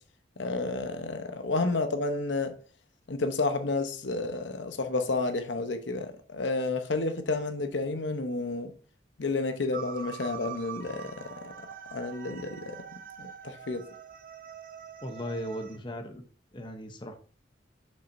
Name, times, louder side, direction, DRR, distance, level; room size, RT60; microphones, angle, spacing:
voice 1, 0.4-2.5 3.1-8.7 9.2-11.5 11.9-12.8 13.2-13.8, left 3 dB, 75° left, 0.8 m, -31 dB
sound 1, 9.7-15.8, right 7 dB, 50° right, 0.6 m, -44 dB
voice 2, 15.0-16.2 16.5-17.1, equal, 25° left, 0.8 m, -37 dB
7.2 x 5.5 x 2.6 m
head